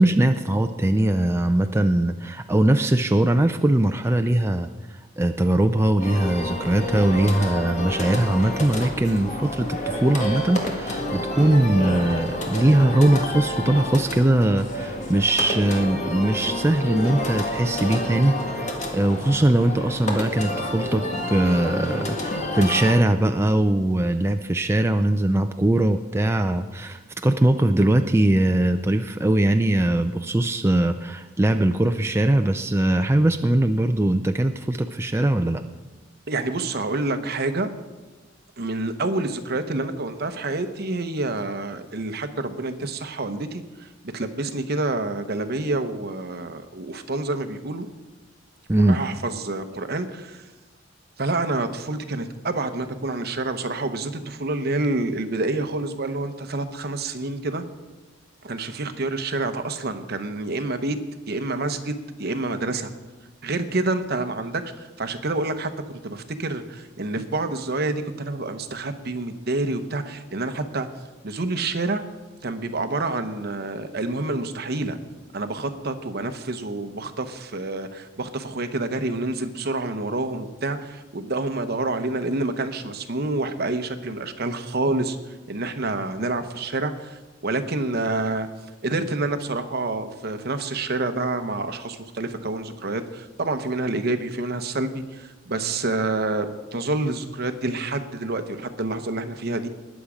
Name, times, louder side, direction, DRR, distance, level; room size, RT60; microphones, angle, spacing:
voice 1, 0.0-4.7 5.2-35.6 48.7-49.0, right 1 dB, 15° right, 7 dB, 0.4 m, -21 dB
sound 1, 6.0-22.9, left 1 dB, 40° left, 1.7 m, -29 dB
voice 2, 36.3-37.7 38.6-43.9 44.1-47.9 48.8-50.4 51.2-57.6 58.4-61.0 61.3-62.9 63.4-70.9 71.2-72.0 72.4-75.0 75.3-85.2 85.5-88.5 88.8-99.7, right 2 dB, 55° right, 8 dB, 0.9 m, -28 dB
20.0 x 7.2 x 5.0 m, 1.2 s
head